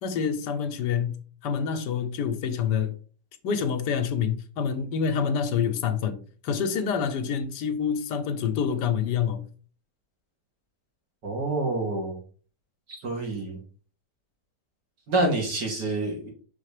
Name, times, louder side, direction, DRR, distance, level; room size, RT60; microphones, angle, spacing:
voice 1, 0.0-2.9 3.4-9.5, left 7 dB, 80° left, 1.4 m, -27 dB
voice 2, 11.2-12.2 13.0-13.6 15.1-16.3, right 2 dB, 75° right, 2.8 m, -27 dB
6.0 x 3.3 x 4.9 m
omnidirectional pair, 1.8 m